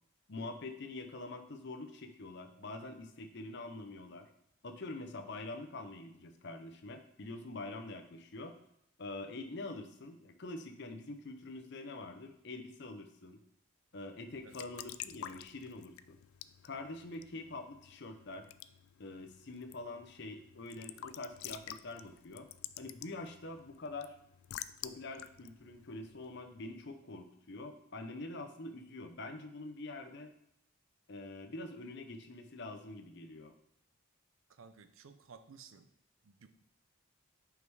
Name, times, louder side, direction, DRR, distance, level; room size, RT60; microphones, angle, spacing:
voice 1, 0.3-4.3 4.6-8.6 9.0-13.4 13.9-16.2 16.6-18.5 19.0-22.5 22.8-24.2 24.8-30.3 31.1-33.5, left 2 dB, 55° left, 6 dB, 0.7 m, -45 dB
Raindrop / Drip / Trickle dribble, 14.3-26.8, left 12 dB, 80° left, 0.3 m, -50 dB
voice 2, 34.5-35.9 36.2-36.6, right 5 dB, 75° right, 10 dB, 0.5 m, -56 dB
5.4 x 4.9 x 4.7 m, 0.75 s
head